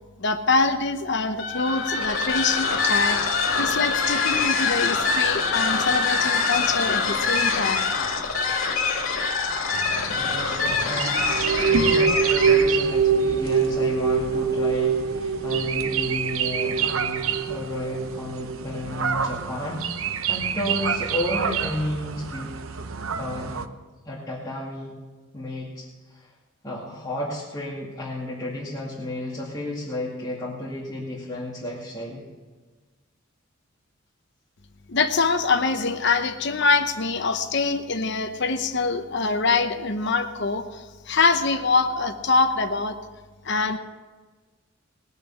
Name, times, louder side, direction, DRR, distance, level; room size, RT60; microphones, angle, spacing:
voice 1, 0.2-3.2 3.6-7.9 34.9-43.0 43.4-43.8, left 4 dB, 55° left, 8 dB, 0.9 m, -24 dB
sound 1, 1.3-12.8, left 4 dB, 75° left, 2.3 m, -24 dB
sound 2, 9.7-23.7, right 7 dB, 80° right, 0.8 m, -30 dB
voice 2, 10.1-22.5 23.2-23.6 24.0-24.9 25.3-26.3 26.6-32.2, left 1 dB, 20° left, -7 dB, 2.3 m, -32 dB
sound 3, 11.0-18.6, right 5 dB, 55° right, 0.9 m, -24 dB
20.0 x 6.8 x 7.1 m, 1.3 s
head